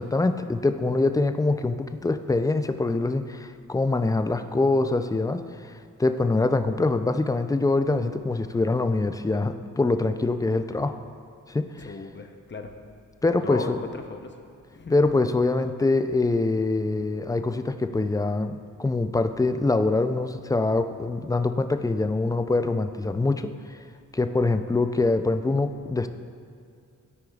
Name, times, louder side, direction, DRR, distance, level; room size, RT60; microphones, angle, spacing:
voice 1, 0.0-5.7 6.0-11.0 11.5-11.9 13.2-13.8 14.9-23.5 24.1-26.1, left 3 dB, 10° left, 9 dB, 0.3 m, -24 dB
voice 2, 11.8-12.7 13.4-14.4 14.7-15.1, left 3 dB, 35° left, 5 dB, 0.7 m, -36 dB
12.5 x 4.9 x 2.3 m, 2.4 s
cardioid pair, 65°, 33 cm